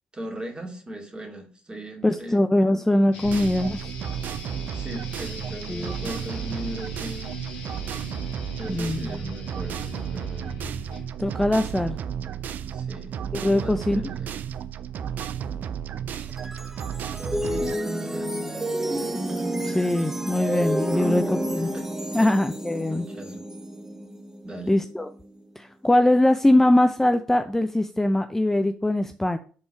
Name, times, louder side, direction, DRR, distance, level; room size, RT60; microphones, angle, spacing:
voice 1, 0.1-2.4 4.7-7.4 8.6-10.5 12.7-14.4 17.4-18.3 20.9-22.4 22.7-23.5 24.4-24.7, right 1 dB, 25° right, 2 dB, 2.3 m, -39 dB
voice 2, 2.0-3.8 5.7-6.1 8.7-9.1 11.2-12.0 13.3-14.0 19.6-21.7 22.1-23.1 24.7-25.1 25.6-29.4, left 1 dB, 10° left, 8 dB, 0.5 m, -22 dB
sound 1, 3.1-11.1, left 2 dB, 80° left, 1.4 m, -40 dB
sound 2, 3.2-17.8, right 8 dB, 60° right, 0.4 m, -33 dB
sound 3, 16.1-25.4, right 1 dB, 10° right, 1.1 m, -30 dB
5.7 x 3.9 x 5.9 m, 0.41 s
hypercardioid pair, 45°, 3 cm